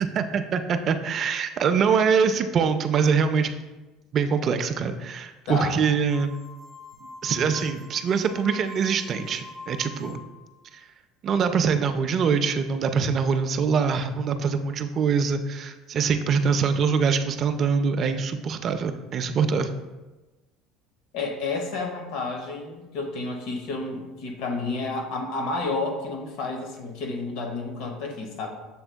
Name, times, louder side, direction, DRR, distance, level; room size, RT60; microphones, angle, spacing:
voice 1, 0.1-3.5 4.1-6.3 7.2-10.2 11.2-19.7, right 6 dB, 50° right, 8 dB, 0.4 m, -24 dB
sound 1, 6.1-10.5, left 3 dB, ahead, 0.7 m, -44 dB
voice 2, 21.1-28.5, left 3 dB, 70° left, 3 dB, 0.8 m, -30 dB
7.0 x 3.4 x 2.2 m, 1.1 s
supercardioid pair, 85°, 0 cm